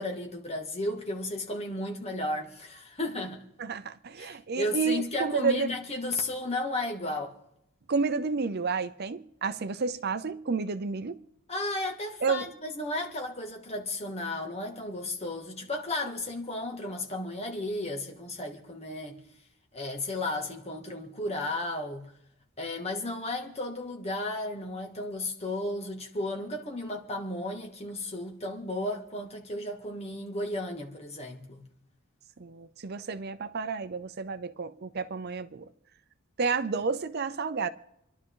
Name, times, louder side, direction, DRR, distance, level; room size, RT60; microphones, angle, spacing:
voice 1, 0.0-3.4 4.2-7.4 11.5-19.2 19.7-22.1 22.6-31.6, left 1 dB, 30° left, 2.1 m, -34 dB
voice 2, 3.6-5.7 7.9-11.2 12.2-12.5 32.4-35.7 36.4-37.7, right 4 dB, 50° right, 0.6 m, -30 dB
27.5 x 11.5 x 3.9 m
head